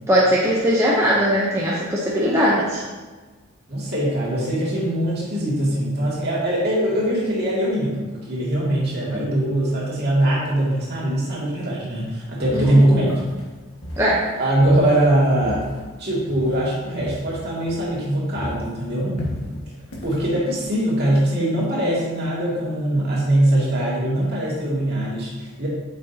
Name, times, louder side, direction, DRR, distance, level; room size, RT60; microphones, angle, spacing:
voice 1, 0.1-2.8 12.5-13.1 14.0-14.2, equal, 15° right, -5 dB, 0.8 m, -20 dB
voice 2, 3.7-13.2 14.4-15.7 16.0-19.2 20.0-25.7, right 1 dB, 50° right, -5 dB, 2.3 m, -21 dB
sound 1, 12.4-18.1 18.3-21.3, left 1 dB, 90° left, 1.8 m, -36 dB
8.3 x 6.4 x 2.8 m, 1.3 s
head